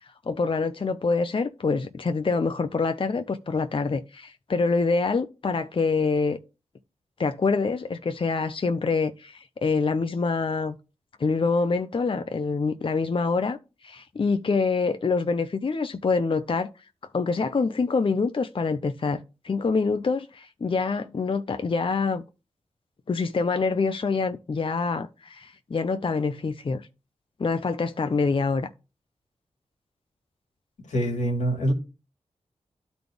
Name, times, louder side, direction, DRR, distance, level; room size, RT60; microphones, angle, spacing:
voice 1, 0.0-6.4 7.2-10.7 11.2-16.7 17.1-22.2 23.1-26.9 27.4-28.7, left 4 dB, 45° left, 0.6 m, -26 dB
voice 2, 30.9-31.7, right 1 dB, 90° left, 2.1 m, -24 dB
12.0 x 4.1 x 3.4 m
cardioid pair, 45°, 12 cm